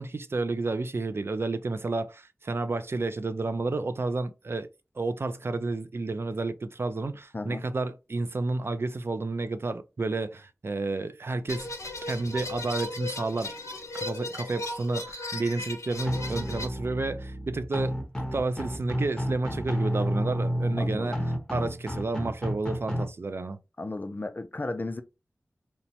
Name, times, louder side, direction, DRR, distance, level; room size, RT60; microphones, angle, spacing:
voice 1, 0.0-4.7 5.0-11.7 12.0-13.5 13.9-18.0 18.3-21.2 21.5-23.6, right 3 dB, 50° right, 0.3 m, -31 dB
voice 2, 7.3-7.6 20.8-21.3 23.8-25.0, left 2 dB, 35° left, 0.4 m, -34 dB
sound 1, 11.5-16.7, left 2 dB, 65° left, 0.8 m, -36 dB
sound 2, 16.1-23.0, equal, 10° left, 0.8 m, -31 dB
3.0 x 2.1 x 2.7 m
wide cardioid pair, 50°, 5 cm